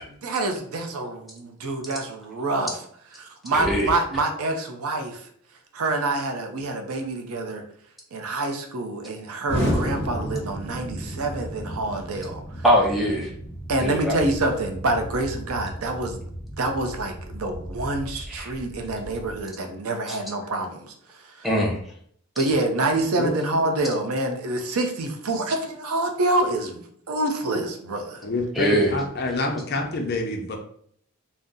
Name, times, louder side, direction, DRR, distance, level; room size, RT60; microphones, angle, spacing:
voice 1, 0.2-2.7 3.2-5.2 5.7-7.6 8.1-12.4 13.7-16.2 16.6-20.9 21.4-21.5 22.4-28.2, right 2 dB, 80° right, 4 dB, 0.5 m, -26 dB
voice 2, 3.5-3.9 12.6-13.3 13.8-14.2 18.3-18.5 20.1-20.2 21.4-21.8 28.6-28.9, equal, ahead, -2 dB, 0.5 m, -22 dB
Explosion, 9.5-19.4, equal, 30° right, 0.8 m, -33 dB
voice 3, 28.2-30.6, left 2 dB, 45° left, 2 dB, 0.5 m, -27 dB
2.6 x 2.0 x 3.5 m, 0.63 s
head